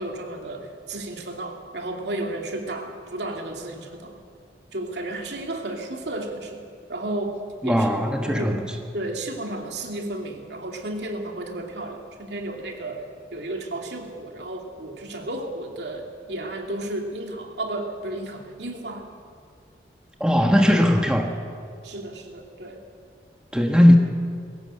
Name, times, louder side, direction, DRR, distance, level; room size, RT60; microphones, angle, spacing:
voice 1, 0.0-4.2 4.7-6.6 6.9-7.9 8.2-8.6 8.9-13.0 13.3-19.1 21.8-22.8, right 1 dB, 80° right, 2 dB, 2.7 m, -33 dB
voice 2, 7.6-8.6 20.2-21.3 23.5-24.0, equal, 5° right, 3 dB, 1.3 m, -18 dB
20.5 x 17.5 x 7.8 m, 2.2 s
head